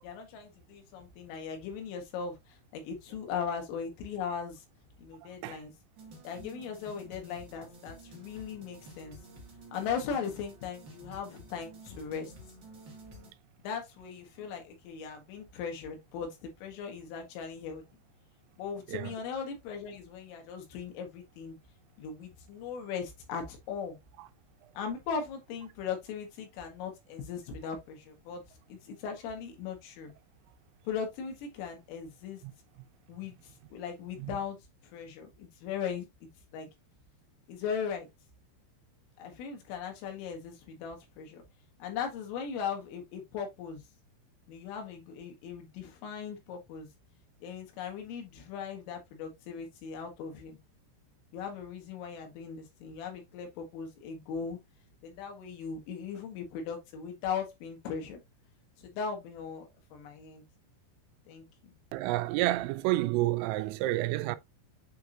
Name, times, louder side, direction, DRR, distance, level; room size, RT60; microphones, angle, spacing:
voice 1, 0.0-4.6 5.0-5.7 6.2-9.2 9.7-12.3 13.6-17.8 18.6-21.6 22.0-24.0 24.8-28.4 28.7-30.1 30.8-32.4 33.1-34.6 34.8-36.7 37.5-38.1 39.2-41.4 41.8-43.8 44.5-46.9 47.4-50.6 51.3-54.6 55.0-58.2 58.8-60.4 61.3-61.8, left 6 dB, 85° left, 4.4 m, -38 dB
sound 1, 6.0-13.3, right 1 dB, 45° right, 1.5 m, -51 dB
voice 2, 61.9-64.4, right 17 dB, 90° right, 3.2 m, -29 dB
8.5 x 4.7 x 2.8 m
omnidirectional pair, 5.7 m